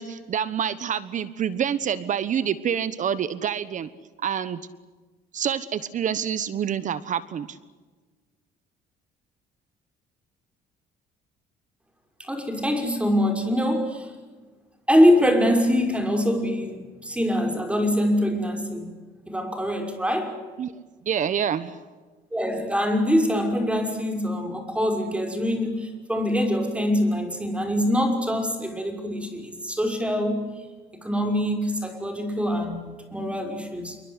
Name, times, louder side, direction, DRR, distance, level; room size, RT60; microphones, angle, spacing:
voice 1, 0.0-3.9 4.2-4.6 5.3-7.6 20.6-20.7 21.0-21.8, right 8 dB, 50° right, 1.2 m, -27 dB
voice 2, 12.2-14.1 14.9-19.0 19.3-20.4 22.3-30.4 31.0-32.8 33.1-34.0, equal, 5° right, 5.9 m, -24 dB
27.5 x 23.5 x 8.2 m
cardioid pair, 110°, 17 cm